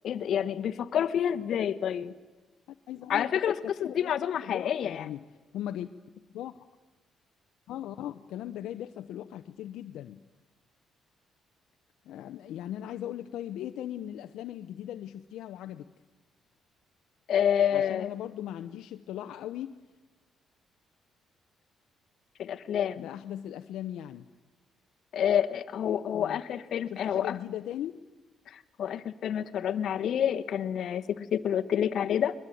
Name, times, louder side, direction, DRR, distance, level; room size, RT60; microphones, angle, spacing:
voice 1, 0.0-2.1 3.1-5.1 17.3-18.1 22.4-23.1 25.1-27.4 28.5-32.3, left 9 dB, 65° left, 11 dB, 1.2 m, -28 dB
voice 2, 2.9-3.3 3.6-4.1 4.4-5.2 5.5-5.9 6.3-6.6 7.7-10.2 12.0-15.9 17.7-19.7 22.9-24.2 26.1-26.4 26.9-27.9, left 11 dB, 85° left, 8 dB, 0.8 m, -38 dB
22.5 x 21.0 x 9.2 m, 1.2 s
cardioid pair, 90°, 0 cm